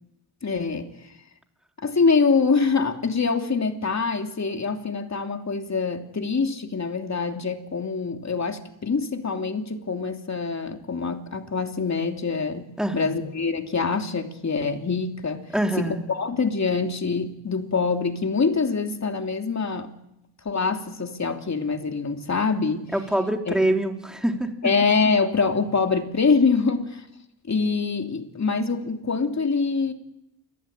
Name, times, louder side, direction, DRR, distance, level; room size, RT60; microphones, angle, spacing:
voice 1, 0.4-0.9 1.8-15.4 15.8-19.9 20.4-22.9 23.5-23.6 24.6-27.1 27.5-29.9, left 4 dB, 40° left, 5 dB, 3.0 m, -25 dB
voice 2, 12.8-13.1 15.5-16.0 22.9-24.5, right 1 dB, ahead, 3 dB, 3.6 m, -24 dB
28.5 x 23.5 x 9.0 m, 0.86 s
cardioid pair, 95°, 43 cm